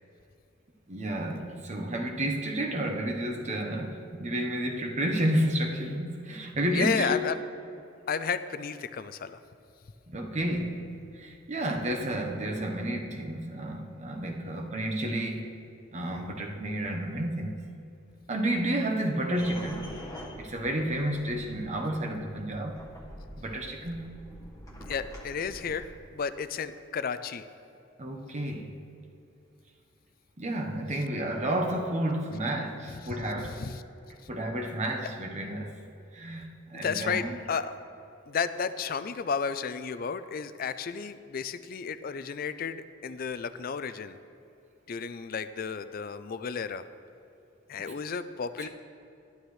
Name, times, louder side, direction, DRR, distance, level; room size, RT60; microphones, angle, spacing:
voice 1, 0.9-7.2 10.1-10.9 11.1-15.5 15.9-17.6 18.3-19.9 20.4-22.8 23.4-24.1 28.0-28.8 30.4-33.6 34.3-35.8 36.1-37.4 48.6-48.7, right 1 dB, 35° right, 2 dB, 1.0 m, -31 dB
voice 2, 6.7-7.4 8.1-9.4 24.9-27.5 33.0-33.8 34.2-34.3 36.8-37.7 38.3-44.2 44.9-46.9 47.7-48.7, left 6 dB, 45° left, 13 dB, 0.4 m, -33 dB
sound 1, 19.4-25.8, equal, 15° left, 1.4 m, -45 dB
13.0 x 11.5 x 3.2 m, 2.6 s
head